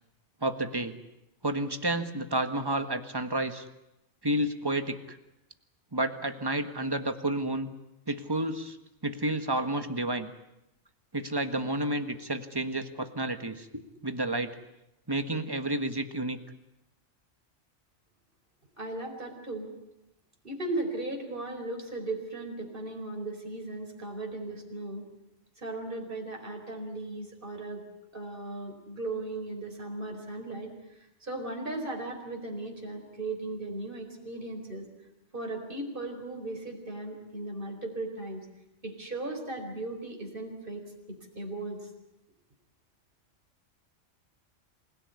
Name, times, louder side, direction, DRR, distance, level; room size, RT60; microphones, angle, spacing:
voice 1, 0.4-0.9 1.4-3.6 4.2-5.2 5.9-7.7 8.1-8.8 9.0-10.3 11.1-14.5 15.1-16.4, right 1 dB, 20° right, 8 dB, 1.6 m, -30 dB
voice 2, 18.8-19.7 20.4-25.0 25.6-27.8 28.1-34.9 35.3-38.5 38.8-41.9, right 2 dB, 45° right, 2 dB, 4.8 m, -37 dB
27.5 x 17.5 x 9.7 m, 0.90 s
omnidirectional pair, 1.3 m